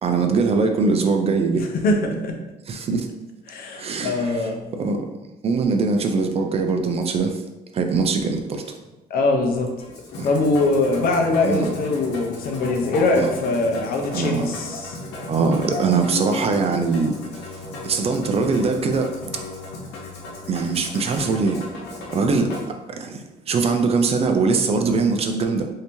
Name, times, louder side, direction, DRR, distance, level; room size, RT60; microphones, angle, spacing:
voice 1, 0.0-1.6 2.7-3.1 3.8-4.4 4.8-5.1 5.4-7.4 7.7-8.6 10.2-10.3 11.4-11.7 13.1-13.3 14.1-14.5 15.3-17.2 17.8-19.2 20.5-21.6 22.1-22.5 22.9-25.7, right 4 dB, 35° right, 5 dB, 0.4 m, -22 dB
voice 2, 1.5-2.3 3.5-4.7 9.1-9.7 10.2-15.0, left 2 dB, 60° left, 3 dB, 0.6 m, -22 dB
Musical instrument, 9.8-22.7, left 2 dB, 85° left, 0.9 m, -35 dB
3.2 x 2.7 x 3.0 m, 1.0 s
cardioid pair, 110°, 17 cm